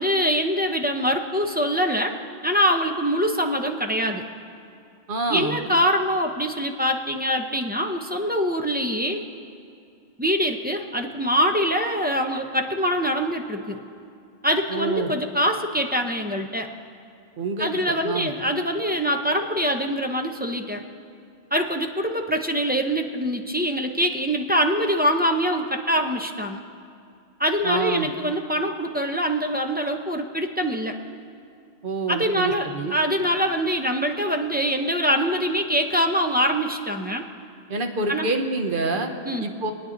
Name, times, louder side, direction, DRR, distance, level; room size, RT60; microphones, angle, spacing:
voice 1, 0.0-2.1 2.4-4.2 5.3-9.2 10.2-13.8 14.4-16.7 17.6-20.8 21.5-26.6 27.4-30.9 32.1-37.2 38.1-38.3 39.2-39.5, equal, 10° right, 3 dB, 0.7 m, -24 dB
voice 2, 5.1-5.6 14.7-15.1 17.4-18.3 27.6-28.1 31.8-32.9 37.7-39.1 39.4-39.7, right 3 dB, 60° right, 4 dB, 1.2 m, -27 dB
24.5 x 9.5 x 3.9 m, 2.5 s
omnidirectional pair, 1.0 m